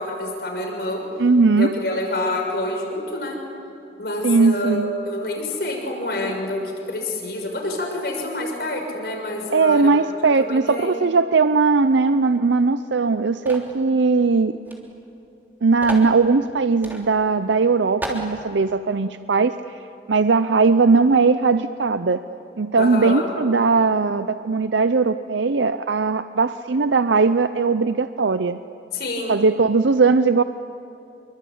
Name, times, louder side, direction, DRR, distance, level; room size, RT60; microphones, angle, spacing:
voice 1, 0.0-1.0 1.5-3.4 4.0-6.6 6.9-10.1 10.4-11.0 22.8-23.3 28.9-29.3, left 1 dB, 60° left, 2 dB, 6.2 m, -27 dB
voice 2, 1.2-1.7 4.2-4.9 9.5-14.6 15.6-19.5 20.1-22.2 22.6-28.6 29.3-30.4, right 4 dB, 85° right, 11 dB, 0.6 m, -19 dB
sound 1, 13.5-13.8 14.7-14.8 15.0-15.1 15.8-16.1 16.8-17.0 17.5-17.6 18.0-18.3, right 1 dB, 10° right, 3.3 m, -31 dB
27.5 x 23.5 x 8.6 m, 2.9 s
head